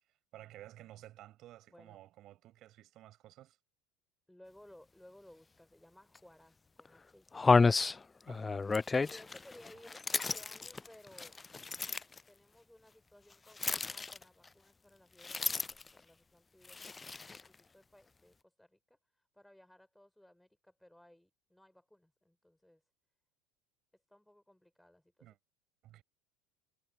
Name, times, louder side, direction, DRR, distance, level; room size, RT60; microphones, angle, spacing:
voice 1, 0.3-3.6 8.3-8.7 25.2-25.4 25.8-26.0, right 14 dB, 50° right, 7.0 m, -54 dB
voice 2, 1.7-2.0 4.3-7.7 9.0-11.4 12.3-16.9 17.2-22.8 24.1-25.4, left 1 dB, 5° left, 5.4 m, -60 dB
sound 1, 6.2-6.3 6.8-6.9 7.3-12.2 13.6-14.5 15.2-16.0 16.6-17.5, left 4 dB, 20° left, 0.5 m, -31 dB
hypercardioid pair, 75°, 0 cm